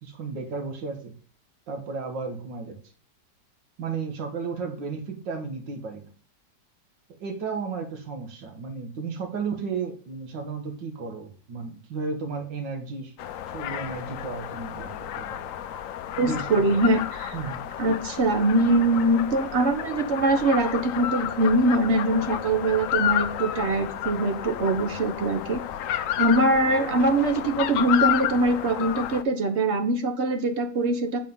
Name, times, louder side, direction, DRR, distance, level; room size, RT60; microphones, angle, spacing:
voice 1, 0.0-1.1 1.7-2.8 3.8-6.1 7.2-13.1 13.5-15.5 16.2-16.9 17.3-17.6, right 4 dB, 90° right, 5 dB, 2.1 m, -34 dB
sound 1, 13.2-29.2, left 11 dB, 75° left, 0.7 m, -31 dB
voice 2, 16.2-17.3 17.8-25.6 26.2-31.2, right 2 dB, 45° right, 7 dB, 1.2 m, -23 dB
7.5 x 5.0 x 5.4 m, 0.42 s
omnidirectional pair, 1.9 m